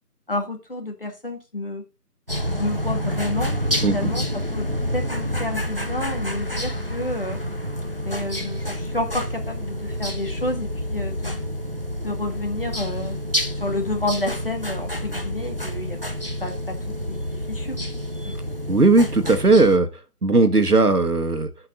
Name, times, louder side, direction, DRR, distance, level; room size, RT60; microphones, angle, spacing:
voice 1, 0.3-1.8 2.6-3.6 3.8-7.4 7.9-11.4 12.0-13.2 13.6-16.0 16.4-16.8 17.1-17.8 18.2-18.4, left 2 dB, 35° left, 4 dB, 2.0 m, -30 dB
sound 1, 2.3-19.8, equal, 35° right, 0.8 m, -28 dB
voice 2, 18.7-19.9 20.2-21.5, right 3 dB, 70° right, 9 dB, 1.6 m, -17 dB
15.0 x 5.8 x 3.7 m, 0.26 s
figure-of-eight pair, 165°, 48 cm